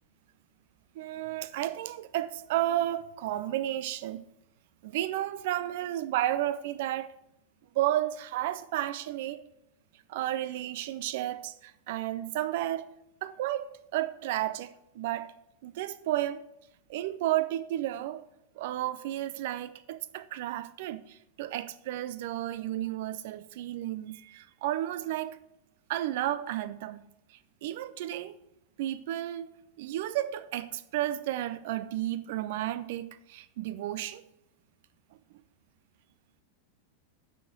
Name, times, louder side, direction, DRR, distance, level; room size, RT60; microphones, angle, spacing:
voice 1, 0.9-4.2 4.8-7.1 7.7-9.4 10.1-12.9 13.2-15.3 15.6-16.4 16.9-18.2 18.6-25.4 25.9-27.0 27.6-28.4 28.8-34.2, right 13 dB, 50° right, 0.5 m, -32 dB
6.8 x 6.1 x 7.5 m
figure-of-eight pair, 90°, 0 cm